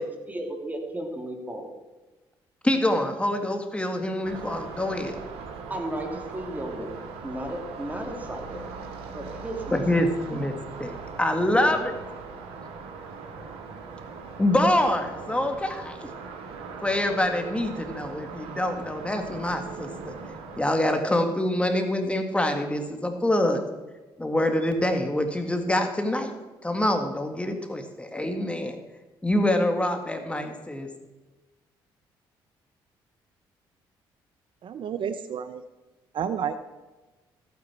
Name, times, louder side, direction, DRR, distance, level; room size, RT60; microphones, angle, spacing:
voice 1, 0.0-1.7 5.7-6.9 7.2-8.8 9.1-10.1 11.5-11.8 12.3-12.4, right 1 dB, 15° right, 2 dB, 3.1 m, -35 dB
voice 2, 2.6-5.1 9.7-11.9 14.4-16.1 16.8-20.1 20.6-23.6 24.2-26.3 26.6-28.8 29.2-30.9, left 1 dB, 10° left, 5 dB, 1.9 m, -25 dB
sound 1, 4.2-20.6, right 4 dB, 85° right, 2.0 m, -40 dB
voice 3, 34.6-35.6 36.1-36.6, right 8 dB, 60° right, 11 dB, 0.7 m, -30 dB
14.5 x 9.2 x 4.5 m, 1.2 s
supercardioid pair, 70°, 10 cm